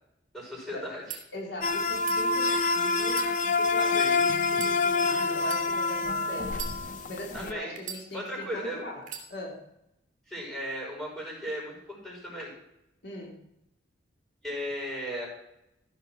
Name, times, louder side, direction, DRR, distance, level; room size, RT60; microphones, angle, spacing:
voice 1, 0.3-1.2 3.8-4.1 7.3-7.7 8.1-8.8 10.3-12.5 14.4-15.3, equal, ahead, -3 dB, 5.5 m, -36 dB
sound 1, 0.9-1.2 1.9-2.2 3.0-3.9 4.5-4.8 5.4-5.6 6.5-7.2 7.8-8.4 9.0-9.3, right 8 dB, 40° right, 2.1 m, -40 dB
voice 2, 1.3-6.7 7.1-9.6 13.0-13.4, left 1 dB, 60° left, -1 dB, 2.4 m, -41 dB
sound 2, 1.6-7.5, left 3 dB, 40° left, 0.5 m, -27 dB
14.5 x 5.8 x 6.1 m, 0.81 s
head